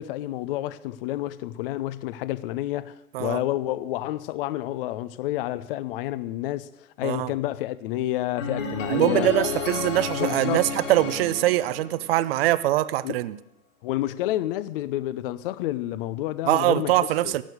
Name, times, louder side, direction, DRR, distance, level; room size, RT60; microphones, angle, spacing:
voice 1, 0.0-6.7 7.0-9.3 10.2-10.6 13.0-13.2 13.8-17.4, left 14 dB, 40° left, 0.7 m, -29 dB
sound 1, 8.4-12.4, left 5 dB, 60° left, 3.1 m, -31 dB
voice 2, 8.9-13.4 16.5-17.4, right 15 dB, 45° right, 0.7 m, -23 dB
14.0 x 11.5 x 6.5 m
hypercardioid pair, 115°, 43 cm